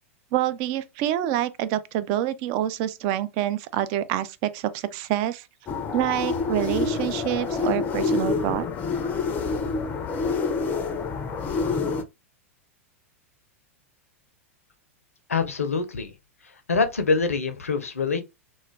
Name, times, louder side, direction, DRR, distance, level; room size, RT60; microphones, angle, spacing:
voice 1, 0.3-5.5 5.9-8.6, right 12 dB, 40° right, 0.4 m, -27 dB
sound 1, 5.7-12.0, left 4 dB, 25° left, 0.4 m, -27 dB
voice 2, 15.3-16.1 16.7-18.2, left 4 dB, 75° left, 0.5 m, -24 dB
2.3 x 2.1 x 3.1 m
figure-of-eight pair, 95°, 8 cm